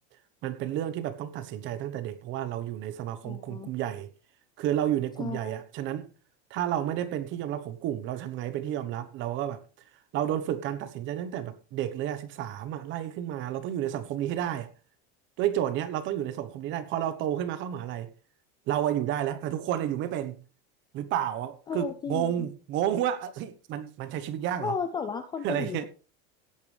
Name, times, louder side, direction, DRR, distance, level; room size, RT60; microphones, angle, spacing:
voice 1, 0.4-4.1 4.6-6.1 6.5-9.6 10.1-14.7 15.4-18.1 18.7-20.4 20.9-24.7 25.4-25.8, right 11 dB, 35° right, 1.1 m, -31 dB
voice 2, 3.2-3.7 5.2-5.5 21.7-22.5 24.6-25.8, left 6 dB, 15° left, 0.4 m, -34 dB
16.5 x 8.8 x 3.3 m
supercardioid pair, 175°, 35 cm